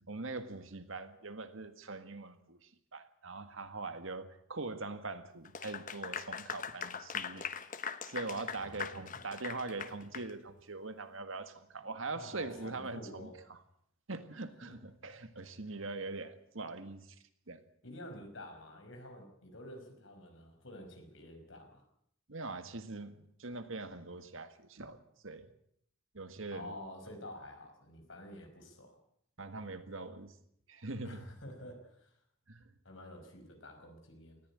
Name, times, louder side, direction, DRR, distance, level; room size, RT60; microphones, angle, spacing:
voice 1, 0.1-7.5 8.0-13.6 14.1-17.2 17.5-17.6 22.3-25.0 25.2-25.5 26.1-26.7 29.4-30.3 30.7-31.3 32.5-32.7, right 3 dB, 65° right, 1.8 m, -42 dB
Clapping / Applause, 5.4-10.3, left 7 dB, 40° left, 1.0 m, -41 dB
voice 2, 8.5-9.2 12.1-13.3 14.6-14.7 15.4-15.5 17.8-21.8 26.5-29.0 31.0-32.1 32.8-34.4, left 1 dB, 60° left, 5.4 m, -49 dB
19.0 x 15.0 x 9.8 m
head